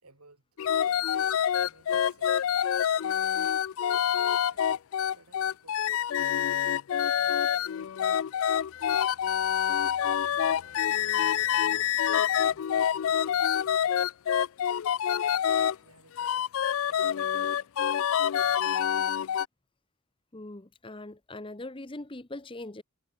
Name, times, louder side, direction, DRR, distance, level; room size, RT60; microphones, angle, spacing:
voice 1, 0.0-2.7 3.1-3.2 4.5-8.2 8.8-9.6 10.0-14.1 15.2-17.7 18.3-19.1, right 3 dB, 85° right, 5.8 m, -61 dB
sound 1, 0.6-15.7 16.2-19.4, left 9 dB, 65° left, 0.3 m, -26 dB
voice 2, 20.3-22.8, left 2 dB, 25° left, 0.9 m, -41 dB
head